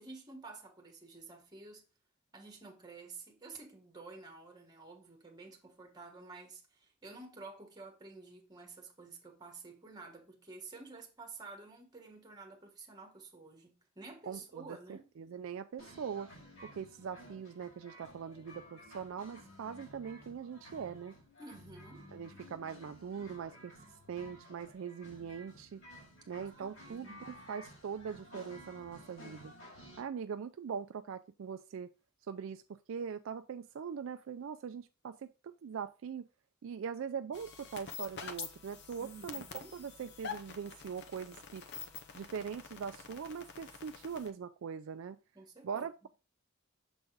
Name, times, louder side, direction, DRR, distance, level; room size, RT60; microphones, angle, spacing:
voice 1, 0.0-1.8 2.3-15.1 21.4-22.1 26.4-27.1 39.0-39.7 45.3-46.1, right 3 dB, 20° right, 1.4 m, -51 dB
voice 2, 14.3-16.3 16.6-21.1 22.1-23.7 24.1-25.8 26.3-29.5 30.0-31.9 32.3-32.6 32.9-36.3 36.6-39.4 39.7-41.6 42.1-45.2 45.6-46.1, right 7 dB, 60° right, 0.3 m, -42 dB
sound 1, 15.8-30.0, equal, 70° left, 4.1 m, -54 dB
sound 2, 37.3-44.3, left 6 dB, 50° left, 0.8 m, -47 dB
6.9 x 3.9 x 3.8 m
head